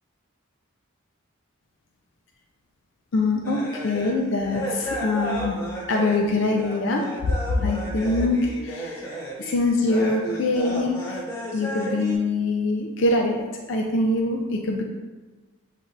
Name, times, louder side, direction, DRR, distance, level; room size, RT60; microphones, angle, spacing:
voice 1, 3.1-7.0 7.6-11.2 11.5-14.8, left 2 dB, 65° left, 1 dB, 0.4 m, -24 dB
sound 1, 3.4-12.2, right 1 dB, 15° left, 0.7 m, -33 dB
7.8 x 2.7 x 2.4 m, 1.3 s
head